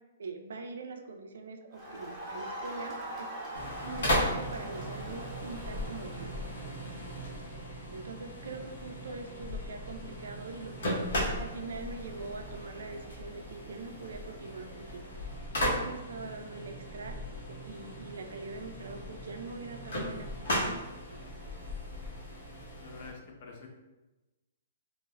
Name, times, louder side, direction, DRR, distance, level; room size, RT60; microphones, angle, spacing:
voice 1, 0.2-3.3 3.8-6.3 7.5-7.6 7.9-11.0 11.4-15.0 15.6-17.2 17.5-20.8, right 3 dB, 85° right, 4 dB, 0.3 m, -43 dB
Crowd, 1.7-6.5, equal, 10° right, 0.5 m, -42 dB
sound 1, 3.5-23.1, equal, 80° left, 0.8 m, -37 dB
voice 2, 22.8-23.7, left 4 dB, 45° left, 1 dB, 0.4 m, -47 dB
3.2 x 2.0 x 2.2 m, 1.1 s
hypercardioid pair, 170°, 0 cm